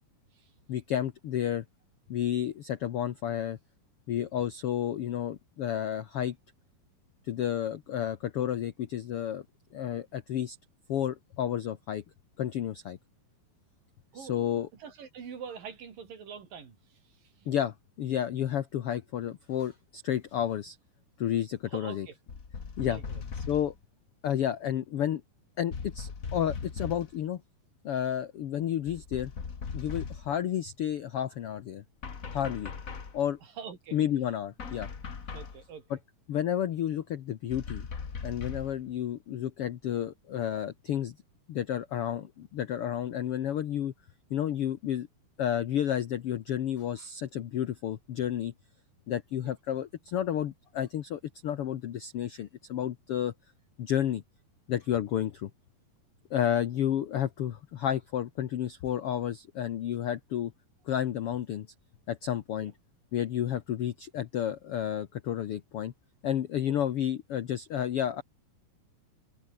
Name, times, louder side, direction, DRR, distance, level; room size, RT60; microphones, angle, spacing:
voice 1, 0.7-1.6 2.1-3.6 4.1-6.4 7.2-9.4 9.7-10.6 10.9-12.0 12.4-13.0 14.1-14.7 17.5-20.8 21.2-22.1 22.8-23.0 23.5-23.7 24.2-25.2 25.6-27.4 27.8-29.3 29.7-31.8 32.3-32.7 33.1-33.4 33.9-34.9 35.9-36.0 36.3-37.9 38.2-41.2 41.5-43.9 44.3-45.1 45.4-48.5 49.1-53.3 53.8-54.2 54.7-55.5 56.3-60.5 60.9-61.7 62.1-62.7 63.1-65.9 66.2-68.2, left 10 dB, 75° left, 1.3 m, -31 dB
voice 2, 14.1-17.5 21.7-22.2 22.8-23.2 33.4-34.0 35.3-35.9 49.4-49.5 62.6-62.7, right 6 dB, 70° right, 5.3 m, -45 dB
sound 1, 22.3-23.8 25.7-27.2 28.9-30.4 32.0-33.2 34.6-35.6 37.5-38.8, left 5 dB, 35° left, 1.4 m, -39 dB
omnidirectional pair, 4.1 m